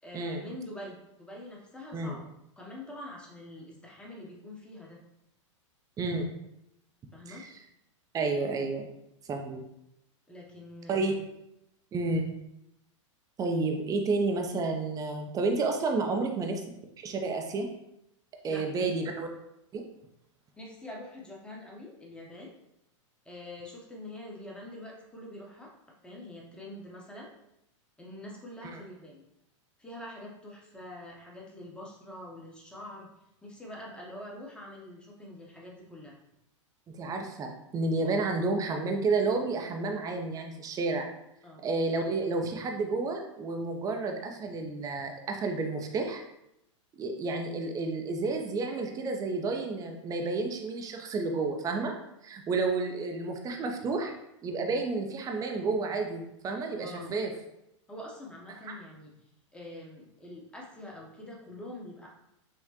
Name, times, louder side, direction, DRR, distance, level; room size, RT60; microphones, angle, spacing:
voice 1, 0.0-2.2 2.6-5.0 7.1-7.4 10.3-11.3 12.0-12.2 18.5-18.9 20.6-22.5 23.2-25.7 26.0-27.3 28.0-29.2 29.8-33.1 33.4-36.2 41.4-41.6 56.7-57.2 57.9-59.1 59.5-62.1, left 1 dB, 5° left, -3 dB, 0.9 m, -45 dB
voice 2, 6.0-6.3 7.3-7.5 8.1-8.9 9.3-9.6 10.9-11.1 11.9-12.3 13.4-16.6 17.0-17.7 18.4-19.3 19.7-19.8 28.6-28.8 37.0-41.1 41.6-46.2 47.0-51.9 52.2-54.1 54.4-57.3 58.5-58.7, right 3 dB, 20° right, 3 dB, 0.6 m, -30 dB
5.8 x 2.1 x 2.9 m, 0.84 s
hypercardioid pair, 110°, 16 cm